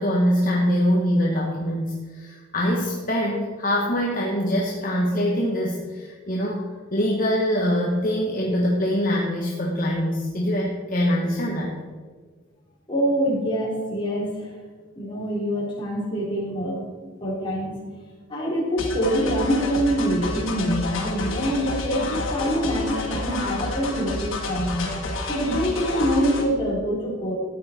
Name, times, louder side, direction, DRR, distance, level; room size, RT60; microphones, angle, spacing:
voice 1, 0.0-6.6 6.9-11.8, equal, 45° left, -3 dB, 1.5 m, -23 dB
voice 2, 12.9-14.5 15.0-16.8 17.2-17.8 18.3-24.9 25.3-27.4, equal, 25° left, -5 dB, 3.7 m, -25 dB
sound 1, 18.8-26.5, left 2 dB, 90° left, 2.2 m, -30 dB
14.0 x 9.4 x 4.5 m, 1.6 s
head